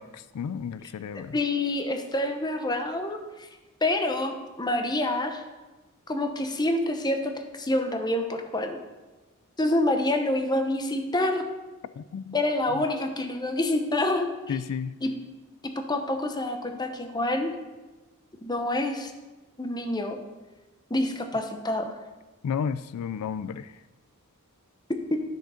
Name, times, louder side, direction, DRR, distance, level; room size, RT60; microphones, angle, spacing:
voice 1, 0.0-1.4 12.0-12.4 12.7-12.8 14.5-15.0 22.4-23.8, left 7 dB, 85° left, 14 dB, 0.3 m, -32 dB
voice 2, 1.1-3.5 3.8-5.4 6.1-8.8 9.6-11.4 12.3-14.6 15.0-15.1 15.8-17.5 18.4-19.1 19.6-20.2 20.9-22.0 25.1-25.2, left 1 dB, 20° left, 5 dB, 0.8 m, -27 dB
10.5 x 6.3 x 4.9 m, 1.2 s
head